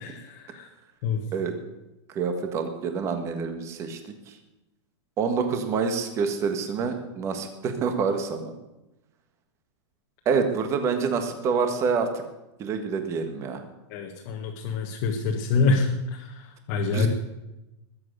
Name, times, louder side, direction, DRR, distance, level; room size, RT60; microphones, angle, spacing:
voice 1, 0.0-0.7 1.0-1.2 13.9-17.1, left 4 dB, 35° left, 0 dB, 1.6 m, -26 dB
voice 2, 2.1-4.0 5.2-8.5 10.2-12.1 12.6-13.6 16.9-17.1, right 5 dB, 20° right, 7 dB, 1.5 m, -27 dB
21.0 x 7.8 x 6.7 m, 0.96 s
supercardioid pair, 175°, 15 cm